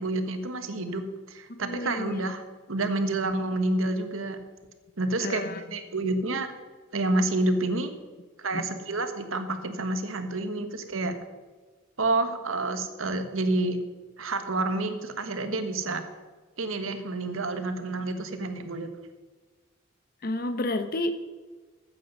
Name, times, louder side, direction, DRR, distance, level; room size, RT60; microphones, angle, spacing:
voice 1, 0.0-2.4 2.7-4.4 5.0-5.4 5.7-6.5 6.9-7.9 8.4-11.1 12.0-13.8 14.2-16.0 16.6-18.9, right 2 dB, 75° right, 8 dB, 1.3 m, -29 dB
voice 2, 1.6-2.2 5.2-5.6 8.5-8.7 20.2-21.1, left 2 dB, 45° left, 9 dB, 0.9 m, -30 dB
13.0 x 8.6 x 5.4 m, 1.4 s
head